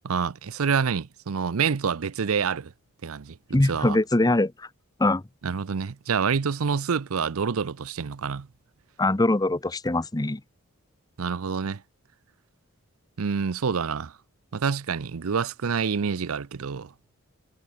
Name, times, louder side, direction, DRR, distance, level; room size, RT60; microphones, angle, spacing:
voice 1, 0.0-2.7 3.0-4.0 5.4-8.5 11.2-11.8 13.2-14.1 14.5-16.9, right 6 dB, 80° right, 0.6 m, -27 dB
voice 2, 3.5-4.7 5.0-5.2 9.0-10.4, left 2 dB, 20° left, 0.7 m, -22 dB
head